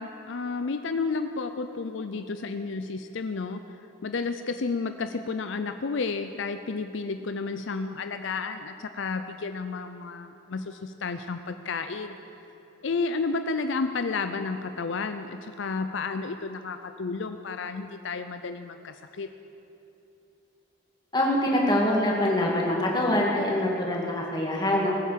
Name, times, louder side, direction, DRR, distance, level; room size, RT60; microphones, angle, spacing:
voice 1, 0.0-3.6 4.0-12.1 12.8-19.3, left 4 dB, 70° left, 8 dB, 0.5 m, -31 dB
voice 2, 21.1-25.0, left 1 dB, 20° left, -2 dB, 2.2 m, -24 dB
19.5 x 8.4 x 7.4 m, 2.9 s
head